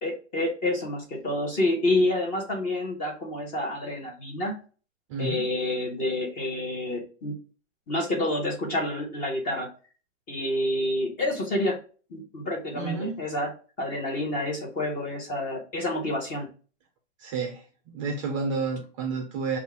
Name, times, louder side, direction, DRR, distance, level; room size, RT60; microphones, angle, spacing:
voice 1, 0.0-4.5 5.2-7.4 7.9-9.7 10.3-11.8 12.1-13.5 13.8-16.5, left 1 dB, 20° left, 0 dB, 1.2 m, -28 dB
voice 2, 5.1-5.5 12.7-13.1 17.2-19.6, right 4 dB, 25° right, 3 dB, 0.5 m, -30 dB
5.2 x 2.5 x 3.4 m, 0.37 s
hypercardioid pair, 150°, 38 cm